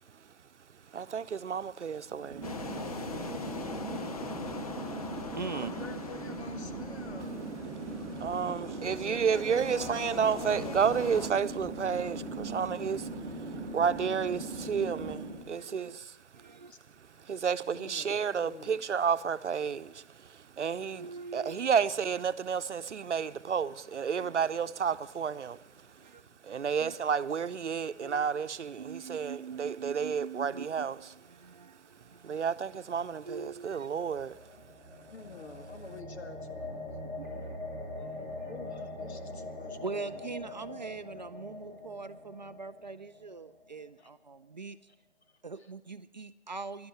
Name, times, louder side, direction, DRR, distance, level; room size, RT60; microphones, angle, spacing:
voice 1, 0.9-2.5 8.2-13.1 13.7-16.1 17.3-20.0 20.3-21.1 21.3-25.6 26.4-31.0 32.2-34.4, right 7 dB, 80° right, 0.8 m, -31 dB
Chatter / Fixed-wing aircraft airplane, 2.1-15.5, right 2 dB, 5° right, 0.9 m, -39 dB
sound 1, 2.4-11.3, left 4 dB, 30° left, 0.7 m, -42 dB
voice 2, 4.4-5.7 8.6-9.0 11.3-11.6 14.9-16.0 16.3-16.7 20.9-21.6 24.2-24.3 26.0-26.2 26.8-27.0 28.0-28.3 28.8-32.5 33.2-33.9 37.2-37.6 38.0-38.5 39.8-44.8 45.4-46.9, right 4 dB, 40° right, 0.5 m, -43 dB
voice 3, 5.5-7.5 8.8-10.9 16.5-16.8 17.1-17.3 17.7-18.9 22.8-23.1 26.0-26.2 35.1-36.8 38.5-40.2 44.0-44.1, left 5 dB, 65° left, 1.8 m, -48 dB
sound 2, 33.7-43.9, left 2 dB, 15° left, 2.9 m, -43 dB
12.0 x 11.5 x 9.0 m
figure-of-eight pair, 160°, 35 cm